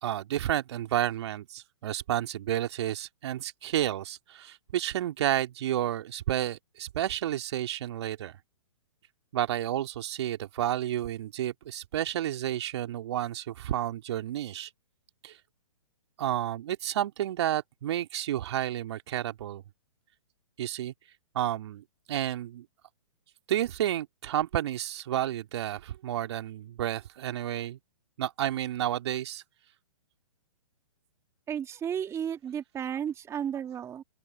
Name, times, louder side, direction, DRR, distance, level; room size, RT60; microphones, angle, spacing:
voice 1, 0.0-8.4 9.3-14.7 15.2-15.4 16.2-19.6 20.6-20.9 21.3-22.7 23.5-27.8 28.2-29.4, right 12 dB, 50° right, 2.6 m, -31 dB
voice 2, 31.5-34.0, right 8 dB, 15° right, 2.0 m, -33 dB
open air
figure-of-eight pair, 120°, 18 cm